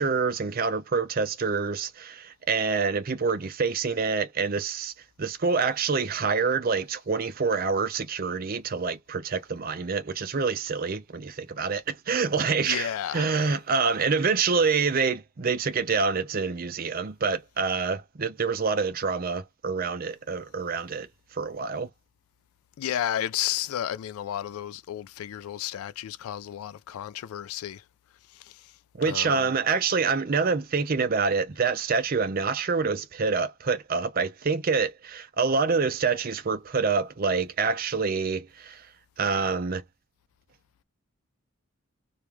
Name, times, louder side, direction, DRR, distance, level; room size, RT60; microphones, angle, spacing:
voice 1, 0.0-4.9 5.2-21.1 21.3-21.9 28.9-38.9 39.2-39.8, right 5 dB, 40° right, 0.5 m, -26 dB
voice 2, 12.6-13.3 22.8-27.8 29.1-29.4, left 11 dB, 80° left, 0.3 m, -32 dB
3.1 x 2.2 x 3.2 m
head